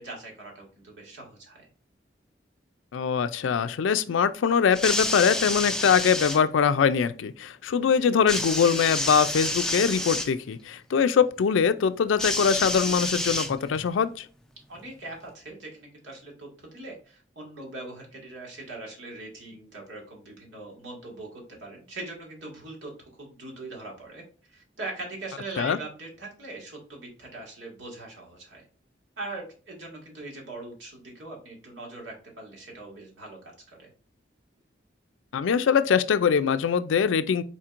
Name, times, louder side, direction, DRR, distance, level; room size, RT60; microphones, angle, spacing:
voice 1, 0.0-1.7 14.7-28.7 29.2-33.4 33.7-33.9, right 2 dB, 85° right, 1.9 m, -41 dB
voice 2, 2.9-14.3 25.6-25.8 35.3-37.4, left 6 dB, 90° left, 0.4 m, -23 dB
sound 1, 4.7-6.4 8.3-10.3 12.2-13.9 14.9-15.0, left 2 dB, 5° left, 0.3 m, -29 dB
4.3 x 4.3 x 2.5 m
head